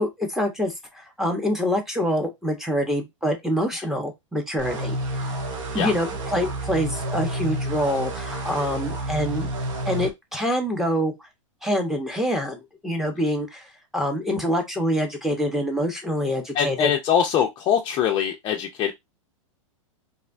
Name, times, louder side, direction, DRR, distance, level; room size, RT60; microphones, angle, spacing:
voice 1, 0.0-5.0 5.7-9.5 9.9-11.1 11.6-13.7 13.9-16.9, equal, ahead, 0.7 m, -25 dB
sound 1, 4.6-10.1, right 1 dB, 65° right, 0.7 m, -30 dB
voice 2, 16.6-18.9, left 9 dB, 30° left, 0.4 m, -22 dB
2.6 x 2.0 x 2.4 m
hypercardioid pair, 105°, 17 cm